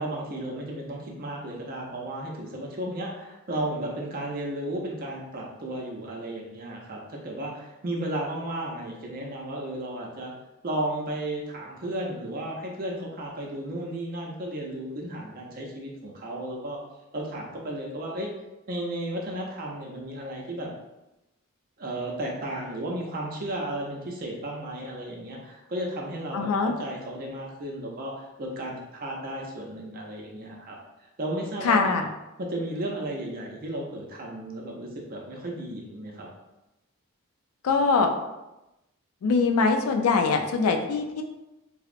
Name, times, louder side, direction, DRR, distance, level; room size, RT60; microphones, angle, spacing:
voice 1, 0.0-10.3 10.6-16.8 17.1-18.3 18.7-20.7 21.8-30.8 31.2-31.9 32.4-36.3, right 1 dB, 40° right, -1 dB, 0.5 m, -34 dB
voice 2, 26.3-26.7 31.6-32.1 37.6-38.1 39.2-41.2, left 4 dB, 80° left, 5 dB, 0.3 m, -22 dB
2.7 x 2.0 x 2.4 m, 0.97 s
head